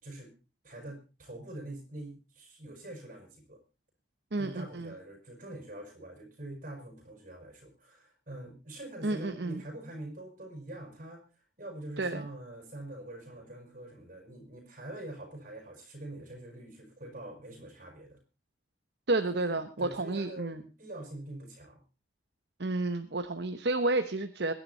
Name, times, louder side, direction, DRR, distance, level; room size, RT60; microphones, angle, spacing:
voice 1, 0.6-3.6 4.4-11.3 11.6-18.2 19.3-21.8, right 1 dB, 50° right, 4 dB, 5.6 m, -44 dB
voice 2, 4.3-4.9 9.0-9.6 12.0-12.2 19.1-20.6 22.6-24.5, right 2 dB, 65° right, 8 dB, 1.0 m, -31 dB
22.5 x 10.5 x 4.1 m, 0.31 s
head